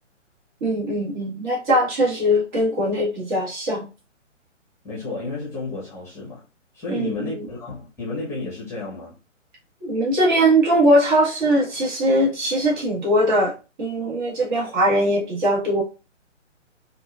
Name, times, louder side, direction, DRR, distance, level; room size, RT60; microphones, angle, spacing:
voice 1, 0.6-3.9 6.9-7.5 9.8-15.8, right 1 dB, 40° right, 1.9 m, -21 dB
voice 2, 4.8-6.4 6.7-9.2, left 3 dB, 5° left, 1.0 m, -32 dB
4.6 x 2.6 x 2.4 m
figure-of-eight pair, 135°, 38 cm